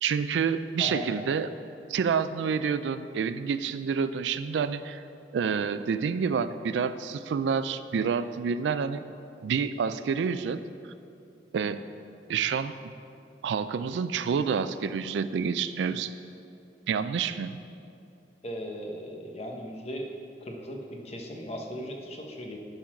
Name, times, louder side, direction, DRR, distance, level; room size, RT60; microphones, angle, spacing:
voice 1, 0.0-1.5 1.9-5.0 5.3-9.0 9.4-10.6 11.5-11.8 12.3-12.9 13.4-16.1 16.9-17.6, right 6 dB, 80° right, 13 dB, 0.3 m, -28 dB
voice 2, 18.4-20.1 20.4-22.6, equal, 35° left, 2 dB, 0.9 m, -37 dB
10.5 x 3.9 x 5.8 m, 2.5 s
head